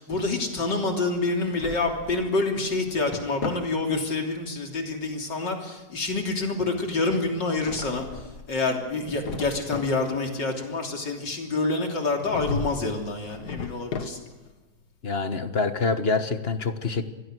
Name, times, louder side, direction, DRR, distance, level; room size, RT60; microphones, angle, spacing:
voice 1, 0.0-8.1 8.5-14.2, left 3 dB, 85° left, 2 dB, 3.9 m, -27 dB
Drawer open or close, 1.3-2.2 2.7-3.7 7.3-8.5 8.9-10.0 12.2-12.9 13.2-14.5, left 5 dB, 65° left, 2.3 m, -36 dB
voice 2, 15.0-17.1, left 4 dB, 40° left, 9 dB, 1.5 m, -26 dB
27.0 x 20.5 x 6.3 m, 1.2 s
omnidirectional pair, 1.9 m